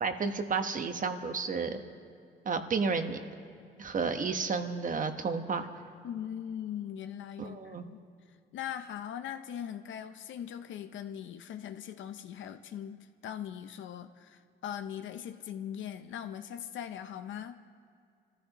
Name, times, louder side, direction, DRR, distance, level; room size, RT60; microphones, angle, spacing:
voice 1, 0.0-1.8 2.4-3.2 3.8-5.7 7.4-7.8, right 5 dB, 40° right, 7 dB, 1.2 m, -31 dB
voice 2, 6.0-8.0 8.5-17.6, left 9 dB, 75° left, 8 dB, 0.7 m, -40 dB
26.5 x 14.5 x 3.0 m, 2.3 s
cardioid pair, 90°, 20 cm